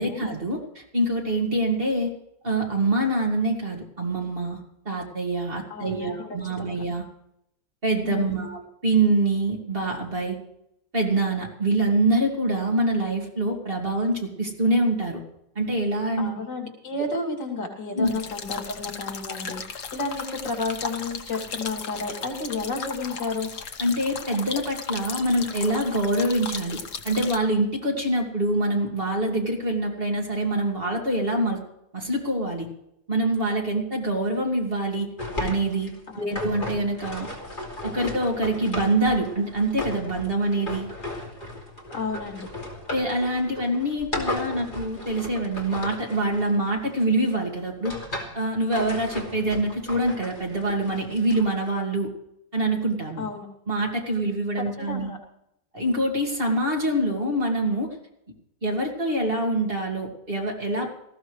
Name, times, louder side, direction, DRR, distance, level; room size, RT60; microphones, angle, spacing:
voice 1, 0.0-2.1 2.4-4.6 4.8-7.0 7.8-10.4 10.9-15.2 15.6-16.3 17.9-18.1 23.8-31.6 31.9-32.7 33.1-35.1 35.4-37.3 37.8-40.9 42.9-48.0 48.3-52.1 52.5-53.2 53.7-55.1 55.7-58.0 58.6-60.9, right 1 dB, 30° right, 0 dB, 2.4 m, -25 dB
voice 2, 5.7-6.8 8.0-8.5 16.2-23.5 36.1-36.3 41.9-42.5 53.2-53.5 54.9-55.2, left 3 dB, 80° left, 1 dB, 3.5 m, -32 dB
sound 1, 18.1-27.4, left 6 dB, 50° left, 1.3 m, -36 dB
sound 2, 35.2-47.1 47.6-48.4 48.7-51.7, left 1 dB, 25° left, 2.9 m, -36 dB
19.0 x 15.0 x 3.2 m, 0.78 s
omnidirectional pair, 1.9 m